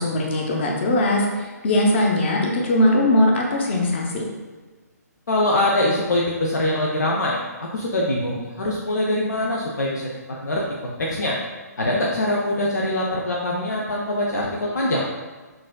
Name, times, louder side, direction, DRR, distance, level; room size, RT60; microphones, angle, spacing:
voice 1, 0.0-4.2, left 1 dB, 40° left, 0 dB, 0.7 m, -20 dB
voice 2, 5.3-10.0 10.4-11.4 11.8-15.1, left 1 dB, 75° left, -3 dB, 0.6 m, -23 dB
5.9 x 2.6 x 2.2 m, 1.3 s
figure-of-eight pair, 135°, 9 cm